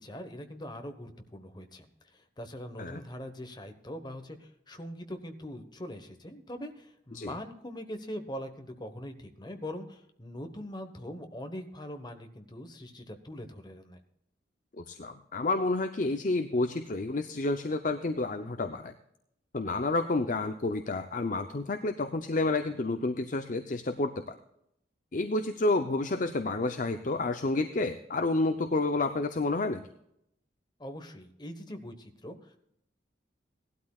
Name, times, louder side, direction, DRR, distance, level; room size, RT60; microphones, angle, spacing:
voice 1, 0.0-1.9 2.1-14.0 30.8-32.6, equal, 25° left, 6 dB, 1.2 m, -42 dB
voice 2, 14.8-18.9 19.5-24.4 25.1-29.8, left 2 dB, 45° left, 7 dB, 0.6 m, -30 dB
18.0 x 12.5 x 2.4 m, 0.77 s
head